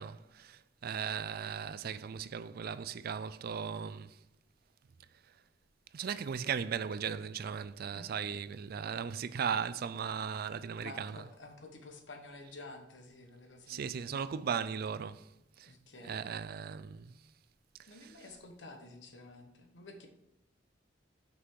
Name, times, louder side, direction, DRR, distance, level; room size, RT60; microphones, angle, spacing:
voice 1, 0.0-4.2 5.3-5.4 5.9-11.2 13.7-15.3 15.6-15.7 16.0-17.2, right 7 dB, 55° right, 0.4 m, -37 dB
voice 2, 7.9-8.4 10.8-14.5 15.7-16.2 17.9-20.1, left 2 dB, 75° left, 1.3 m, -51 dB
6.1 x 5.7 x 4.8 m
head